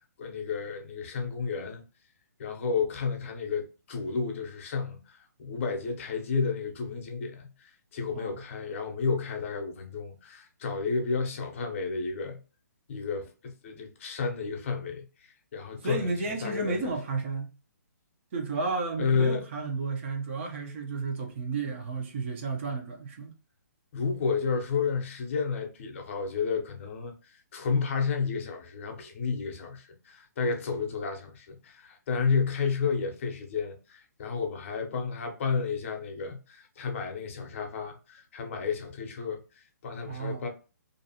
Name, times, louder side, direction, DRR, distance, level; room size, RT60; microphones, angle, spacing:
voice 1, 0.2-1.8 2.4-12.4 12.9-16.1 16.4-16.9 19.0-19.4 23.9-40.5, left 5 dB, 45° left, 0.7 m, -31 dB
voice 2, 15.8-17.6 18.3-23.3 40.1-40.5, right 4 dB, 40° right, 0.7 m, -32 dB
2.6 x 2.3 x 2.7 m
hypercardioid pair, 140°, 10 cm